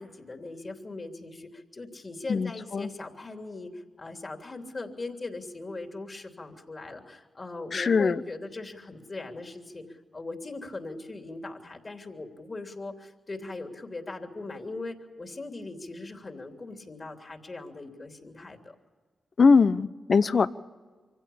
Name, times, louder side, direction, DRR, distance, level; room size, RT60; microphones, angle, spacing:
voice 1, 0.0-18.7, left 2 dB, 40° left, 4 dB, 3.2 m, -40 dB
voice 2, 2.3-2.9 7.7-8.2 19.4-20.5, left 5 dB, 60° left, 14 dB, 0.8 m, -21 dB
24.5 x 16.0 x 8.7 m, 1.4 s
supercardioid pair, 45°, 0 cm